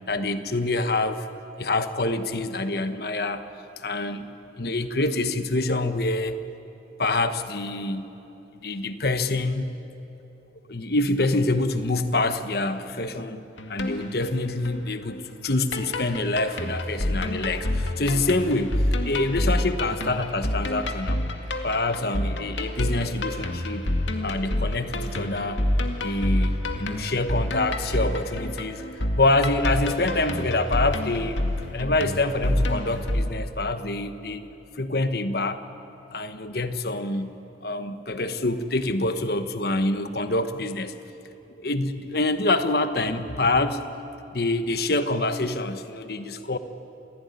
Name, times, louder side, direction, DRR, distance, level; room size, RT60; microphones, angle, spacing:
voice 1, 0.1-1.3 1.6-3.4 3.8-4.3 4.6-6.4 7.0-8.1 8.6-9.7 10.7-13.4 13.7-18.8 19.0-21.2 21.6-23.9 24.2-25.6 26.0-28.8 29.1-31.4 31.7-34.4 34.7-35.6 36.1-37.3 37.6-40.9 41.6-43.8 44.3-46.6, left 2 dB, 55° left, 9 dB, 1.2 m, -26 dB
sound 1, 13.6-33.2, left 1 dB, 90° left, 2.1 m, -28 dB
28.0 x 17.0 x 9.6 m, 3.0 s
head